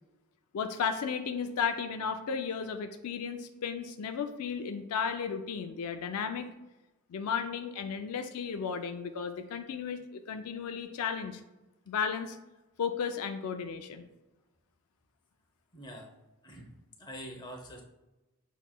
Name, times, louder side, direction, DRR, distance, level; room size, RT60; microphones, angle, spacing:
voice 1, 0.5-6.5 7.1-11.4 11.9-12.4 12.8-14.1, left 6 dB, 75° left, 7 dB, 0.4 m, -34 dB
voice 2, 15.7-16.1 16.4-16.7 17.0-17.8, equal, 20° left, 1 dB, 0.8 m, -45 dB
7.2 x 3.0 x 2.2 m, 1.0 s
head